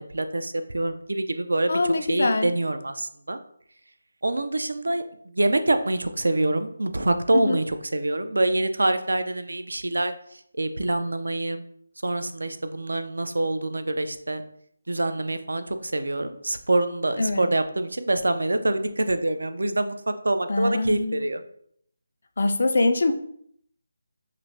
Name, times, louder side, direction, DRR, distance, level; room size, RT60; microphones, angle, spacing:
voice 1, 0.0-3.4 4.2-5.0 5.3-10.1 10.6-11.6 12.0-14.4 14.9-20.0 20.2-21.4, right 2 dB, 90° right, 9 dB, 0.4 m, -25 dB
voice 2, 1.7-2.5 7.3-7.6 17.2-17.5 20.5-21.3 22.4-23.1, left 2 dB, 55° left, 8 dB, 0.3 m, -23 dB
5.0 x 2.1 x 2.6 m, 0.67 s
figure-of-eight pair, 170°, 0 cm